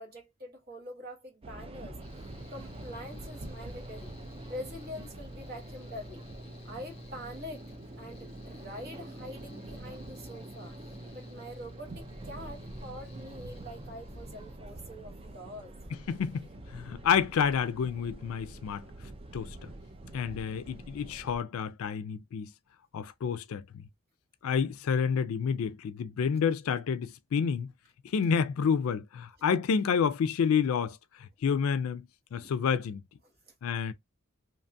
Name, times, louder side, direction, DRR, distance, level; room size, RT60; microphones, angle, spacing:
voice 1, 0.0-2.0 2.5-4.1 4.5-6.2 6.6-7.6 8.0-10.7 11.1-15.7 32.4-32.5 33.5-33.6, equal, 45° right, 1.1 m, -44 dB
sound 1, 1.4-21.4, right 2 dB, 25° right, 0.3 m, -46 dB
Mechanical fan, 2.0-14.6, left 1 dB, 25° left, 0.6 m, -49 dB
voice 2, 16.1-18.8 19.3-19.6 20.1-22.5 22.9-23.8 24.4-27.7 28.0-33.0 33.6-33.9, left 6 dB, 80° left, 0.3 m, -29 dB
2.8 x 2.3 x 2.5 m
head